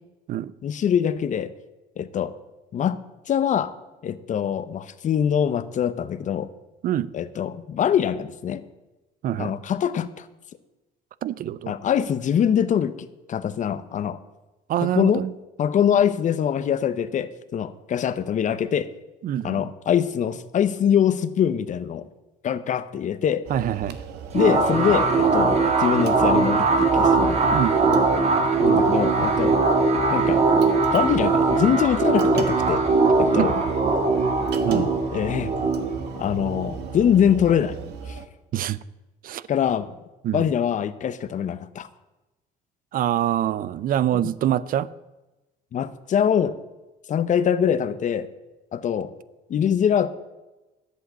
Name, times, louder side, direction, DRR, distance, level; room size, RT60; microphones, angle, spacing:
voice 1, 0.6-1.5 2.0-2.3 2.7-3.0 3.3-3.7 4.0-6.5 7.1-8.6 9.4-10.3 11.7-12.9 13.3-14.2 15.0-15.2 15.6-18.9 19.4-22.1 22.4-23.5 24.3-27.4 28.6-29.6 30.1-30.5 30.9-32.8 33.2-33.5 34.7-35.5 36.2-37.8 38.1-38.2 39.5-39.9 40.3-41.9 44.1-44.2 45.7-46.6 47.1-48.3 48.7-49.1 49.5-50.1, left 8 dB, 45° left, 0.9 m, -23 dB
voice 2, 9.2-9.5 11.2-11.7 14.7-15.3 19.2-19.7 23.5-24.0 27.5-27.8 33.4-33.5 34.6-34.9 38.5-38.8 39.2-39.4 40.2-40.5 42.9-44.9, right 11 dB, 55° right, 0.5 m, -25 dB
sound 1, 23.4-38.3, right 6 dB, 85° right, 1.2 m, -37 dB
sound 2, 24.3-37.6, right 4 dB, 40° right, 2.1 m, -21 dB
11.5 x 8.4 x 8.1 m
cardioid pair, 110°, 17 cm